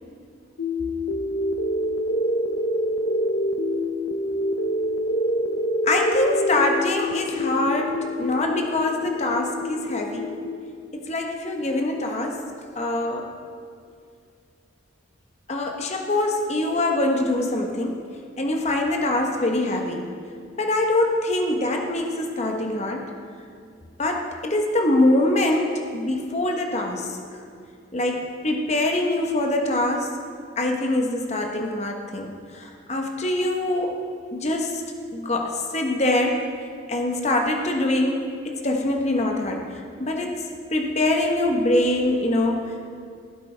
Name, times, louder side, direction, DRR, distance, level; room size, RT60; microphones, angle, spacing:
sound 1, 0.6-10.6, equal, 65° left, 0.5 m, -26 dB
voice 1, 5.8-10.4 11.1-12.4 12.8-13.3 15.5-18.0 18.4-20.1 20.6-23.1 24.0-27.1 27.9-30.1 30.6-32.3 32.6-34.0 34.3-34.8 35.1-36.5 36.9-38.3 38.6-39.6 40.0-40.4 40.7-42.6, left 1 dB, 35° left, 2 dB, 0.9 m, -24 dB
15.5 x 8.3 x 3.3 m, 2.3 s
head